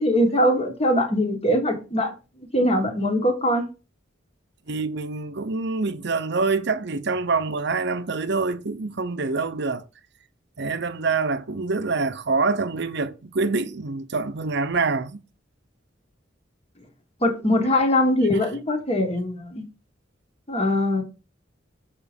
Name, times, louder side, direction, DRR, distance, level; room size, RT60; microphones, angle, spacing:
voice 1, 0.0-2.1 2.5-3.7 17.2-19.7 20.5-21.0, left 1 dB, 30° left, 1.7 m, -22 dB
voice 2, 4.7-9.8 10.6-15.2, right 4 dB, 60° right, 0.8 m, -26 dB
7.4 x 5.3 x 5.2 m
head